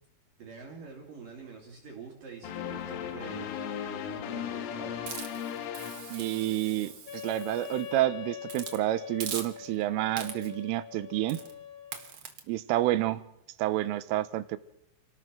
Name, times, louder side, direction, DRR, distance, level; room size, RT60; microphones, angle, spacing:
voice 1, 0.4-5.0, right 5 dB, 50° right, 4.1 m, -45 dB
sound 1, 2.4-6.9, left 10 dB, 85° left, 4.2 m, -37 dB
Hiss, 5.1-7.9 8.5-8.8 9.2-9.8 10.2-10.6 11.3-11.5 11.9-12.4, right 6 dB, 65° right, 1.3 m, -41 dB
voice 2, 6.1-11.4 12.5-13.2 13.6-14.6, right 15 dB, 90° right, 3.6 m, -29 dB
Wind instrument woodwind instrument, 7.1-12.1, left 9 dB, 50° left, 3.0 m, -43 dB
29.0 x 18.5 x 6.2 m
omnidirectional pair, 5.6 m